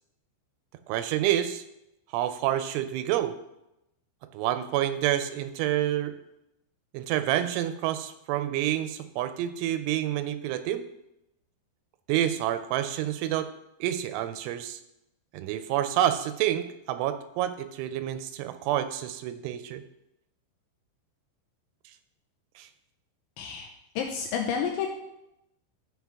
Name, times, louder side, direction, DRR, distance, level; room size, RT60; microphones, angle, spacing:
voice 1, 0.9-1.6 2.1-3.4 4.3-6.2 6.9-10.9 12.1-13.5 13.8-14.8 15.3-19.8 22.6-22.7, right 12 dB, 85° right, 10 dB, 2.9 m, -28 dB
voice 2, 23.4-23.7 24.0-24.9, left 7 dB, 80° left, 1 dB, 3.0 m, -30 dB
14.5 x 5.5 x 3.5 m, 0.86 s
omnidirectional pair, 5.6 m